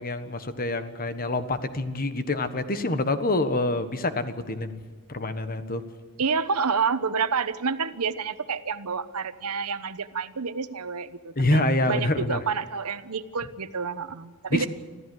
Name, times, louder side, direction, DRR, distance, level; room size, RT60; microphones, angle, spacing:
voice 1, 0.0-4.8 5.1-5.8 11.4-12.4 14.5-14.7, left 2 dB, 40° left, 10 dB, 1.4 m, -26 dB
voice 2, 6.2-14.7, right 5 dB, 85° right, 12 dB, 1.0 m, -29 dB
25.5 x 15.0 x 7.9 m, 1.4 s
head